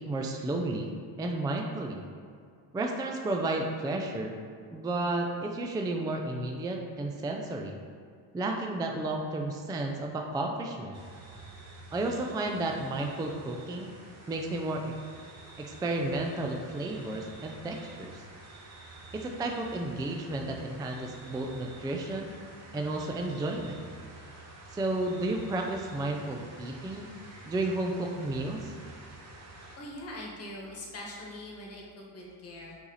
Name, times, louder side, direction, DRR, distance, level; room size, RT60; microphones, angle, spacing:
voice 1, 0.0-2.0 2.7-4.3 4.7-7.8 8.3-11.0 11.9-13.9 14.3-14.9 15.6-18.2 19.1-22.3 22.7-23.8 24.7-27.1 27.5-28.7, right 2 dB, 10° right, 2 dB, 0.3 m, -32 dB
sound 1, 10.9-29.8, right 2 dB, 35° right, 1.1 m, -49 dB
voice 2, 29.8-32.8, left 1 dB, 35° left, -2 dB, 1.5 m, -42 dB
5.5 x 4.2 x 4.0 m, 2.3 s
cardioid pair, 115°, 44 cm